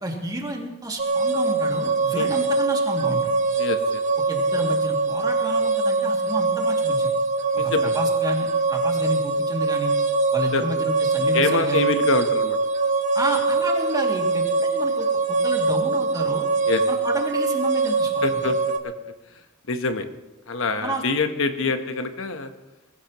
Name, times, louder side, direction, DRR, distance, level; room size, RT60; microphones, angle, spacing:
voice 1, 0.0-3.3 4.3-7.1 7.6-9.9 10.3-11.9 13.1-16.5 16.9-18.5 20.8-21.0 21.6-21.7, right 1 dB, 20° right, 0 dB, 2.4 m, -31 dB
sound 1, 1.0-18.8, right 3 dB, 35° right, 0.9 m, -23 dB
voice 2, 3.6-4.0 7.5-7.9 10.5-10.6 11.3-12.6 16.7-16.8 18.2-18.5 18.8-18.9 19.3-19.4 19.7-20.1 20.5-22.5, left 3 dB, 70° left, 7 dB, 1.1 m, -25 dB
20.5 x 16.5 x 3.0 m, 0.99 s
head